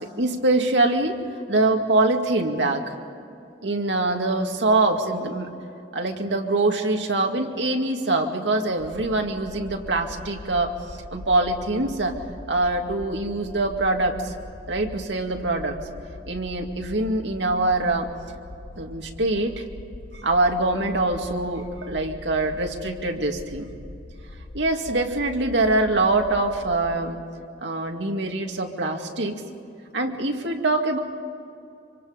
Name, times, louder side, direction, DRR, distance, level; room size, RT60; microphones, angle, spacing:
voice 1, 0.2-1.2 1.5-2.9 3.6-5.5 5.9-10.7 11.1-12.1 12.5-14.3 14.7-15.8 16.3-18.1 18.8-19.6 20.1-23.7 24.5-27.2 27.6-29.4 29.9-31.0, right 2 dB, 90° right, 3 dB, 2.2 m, -24 dB
sound 1, 8.7-27.0, left 2 dB, 70° left, 1.0 m, -42 dB
25.5 x 25.5 x 5.2 m, 2.6 s
head